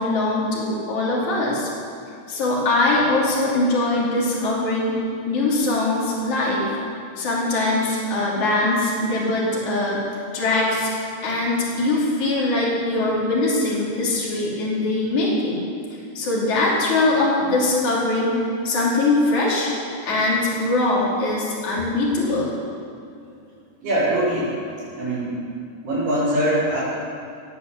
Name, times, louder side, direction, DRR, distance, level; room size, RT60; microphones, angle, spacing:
voice 1, 0.0-1.7 2.3-5.0 5.3-6.7 7.2-10.0 10.3-10.9 11.2-15.7 16.2-19.7 20.0-22.5, left 2 dB, 60° left, -5 dB, 4.3 m, -22 dB
voice 2, 23.8-24.6 24.9-25.4 25.8-26.8, right 1 dB, 85° right, -14 dB, 6.3 m, -22 dB
20.0 x 7.8 x 7.2 m, 2.5 s
omnidirectional pair, 3.8 m